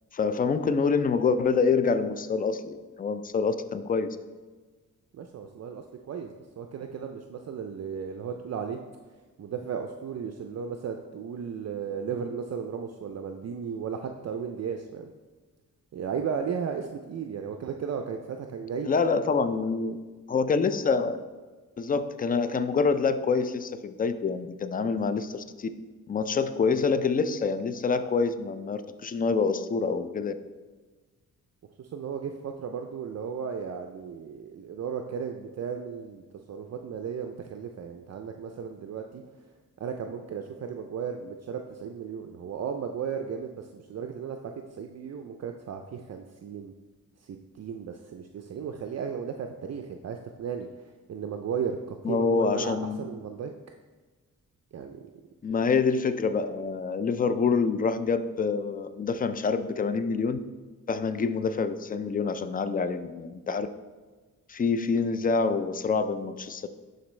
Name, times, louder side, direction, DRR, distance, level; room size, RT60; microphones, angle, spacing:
voice 1, 0.1-4.2 18.9-20.0 20.3-21.1 21.8-25.7 26.1-30.3 52.0-53.0 55.4-60.4 60.9-63.7 64.5-66.7, left 5 dB, 25° left, 11 dB, 0.4 m, -26 dB
voice 2, 5.1-8.8 9.4-15.1 15.9-18.9 31.8-39.2 39.8-46.7 47.2-53.5 54.7-55.1, right 7 dB, 50° right, 5 dB, 0.4 m, -35 dB
11.0 x 4.0 x 3.2 m, 1.3 s
cardioid pair, 85°, 34 cm